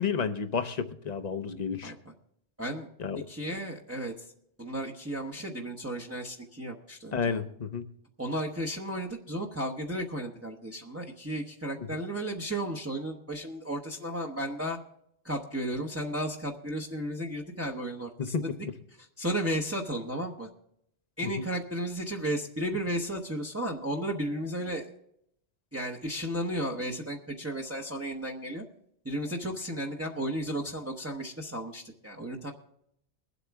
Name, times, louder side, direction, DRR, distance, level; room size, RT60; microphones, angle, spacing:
voice 1, 0.0-1.9 3.0-3.2 7.1-7.8 18.2-18.7 21.2-21.3, left 6 dB, 40° left, 10 dB, 0.8 m, -31 dB
voice 2, 1.8-2.1 2.6-2.9 3.3-4.3 4.6-7.4 8.2-14.8 15.2-18.5 19.0-20.5 21.2-24.9 25.7-28.6 29.0-32.5, right 1 dB, 15° right, -1 dB, 0.9 m, -34 dB
22.5 x 8.1 x 3.5 m, 0.75 s
omnidirectional pair, 1.2 m